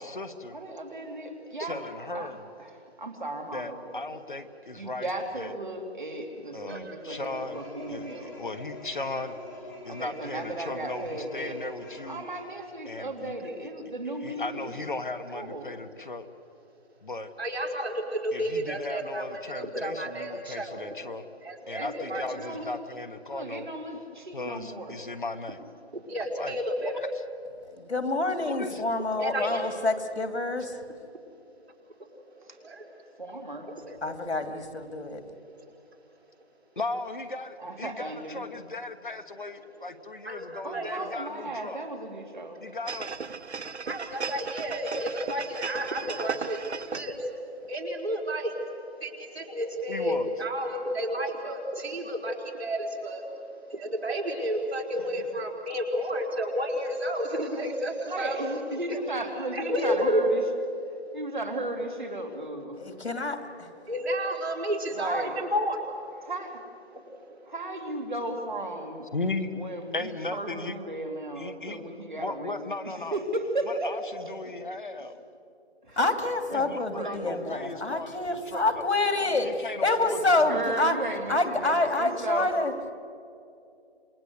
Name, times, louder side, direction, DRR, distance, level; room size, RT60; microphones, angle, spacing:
voice 1, 0.0-0.6 1.6-2.4 3.5-5.1 5.4-5.5 6.5-7.6 7.9-9.4 9.8-12.3 12.8-13.3 14.2-16.3 17.0-17.3 18.3-21.2 21.7-23.7 24.3-25.6 26.4-27.1 28.4-28.8 36.8-41.8 42.6-43.2 49.9-50.3 69.1-69.5 69.9-70.8 71.3-71.8 72.2-73.2 73.6-75.2 76.5-78.9 79.4-80.8, left 2 dB, 50° left, 9 dB, 1.3 m, -37 dB
voice 2, 0.5-1.8 2.1-2.3 2.6-2.7 3.0-4.1 4.7-8.3 9.9-11.6 12.1-14.7 15.3-15.7 21.8-22.8 23.3-25.0 33.2-33.7 37.6-38.4 40.6-42.6 58.1-60.4 61.1-62.8 64.9-65.4 66.2-66.6 67.5-69.1 69.5-72.6 72.8-73.9 74.4-74.5 75.9-76.0 76.5-77.6 80.5-82.5, right 1 dB, 45° right, 4 dB, 2.9 m, -35 dB
sound 1, 7.1-12.4, left 1 dB, 15° left, 3.5 m, -45 dB
voice 3, 17.4-20.8 21.4-22.2 25.9-27.0 29.2-29.7 32.6-32.9 33.5-34.0 35.4-35.5 40.2-41.2 43.8-48.7 49.0-58.5 58.9-59.0 59.5-60.2 63.8-65.9 66.9-67.4, equal, 75° right, 0 dB, 4.8 m, -31 dB
voice 4, 27.8-30.8 34.0-35.2 62.8-63.7 76.0-81.0 81.3-82.7, left 2 dB, 85° left, 7 dB, 2.8 m, -27 dB
sound 2, 42.9-47.3 47.7-47.8, right 5 dB, 90° right, 1.1 m, -36 dB
27.5 x 21.0 x 8.1 m, 2.5 s
figure-of-eight pair, 180°, 32 cm